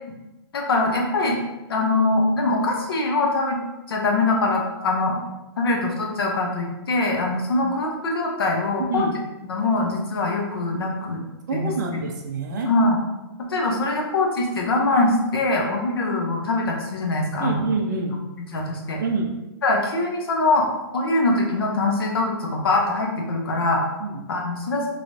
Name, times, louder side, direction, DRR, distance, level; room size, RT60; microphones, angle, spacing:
voice 1, 0.5-1.4 1.7-3.6 3.9-5.2 5.6-9.1 9.4-11.2 11.5-12.0 12.7-13.0 13.5-17.6 18.5-19.0 19.6-20.7 20.9-23.8 24.3-24.9, left 2 dB, 60° left, 0 dB, 0.8 m, -23 dB
voice 2, 8.8-9.1 11.5-12.7 17.4-18.2 19.0-19.3 24.0-24.2, right 3 dB, 45° right, 0 dB, 0.6 m, -26 dB
3.1 x 3.0 x 2.6 m, 1.0 s
hypercardioid pair, 175°, 14 cm